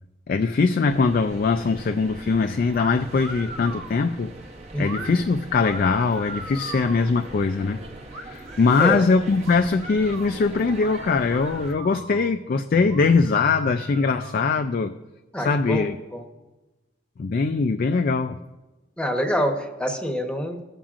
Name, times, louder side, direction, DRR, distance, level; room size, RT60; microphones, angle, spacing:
voice 1, 0.3-4.3 4.8-7.8 8.2-14.9 15.4-16.0 17.2-18.4, left 4 dB, 55° left, 8 dB, 0.3 m, -22 dB
sound 1, 0.9-11.8, right 2 dB, 40° right, 0.8 m, -42 dB
sound 2, 2.7-2.9 3.2-4.0 4.8-5.1 5.6-7.1 8.1-8.9 9.4-10.4 10.8-10.9 11.3-12.3 12.9-13.1 13.5-14.6, right 2 dB, 80° right, 1.1 m, -39 dB
voice 2, 4.7-5.1 8.8-9.0 15.3-16.2 19.0-20.6, equal, 5° left, 3 dB, 0.9 m, -26 dB
16.5 x 7.2 x 2.5 m, 1.1 s
head